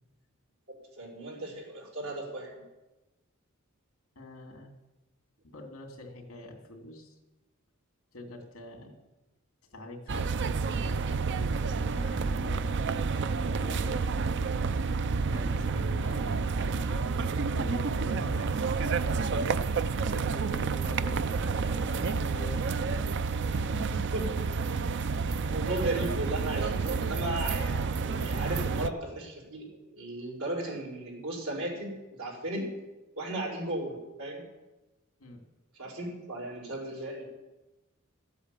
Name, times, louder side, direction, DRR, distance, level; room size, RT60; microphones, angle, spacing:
voice 1, 0.7-2.6 23.8-24.6 25.5-32.7 33.2-34.4 35.7-37.2, right 1 dB, 80° right, -3 dB, 4.9 m, -36 dB
voice 2, 4.1-4.7 5.4-7.2 8.1-8.9 9.7-11.2 11.6-12.7 13.5-14.1 15.3-19.8 20.1-23.0 23.4-23.8 24.1-24.2 35.2-35.4, left 2 dB, 70° left, 2 dB, 2.7 m, -45 dB
sound 1, 10.1-28.9, right 4 dB, 55° right, 0.5 m, -29 dB
13.0 x 8.2 x 8.3 m, 1.1 s
head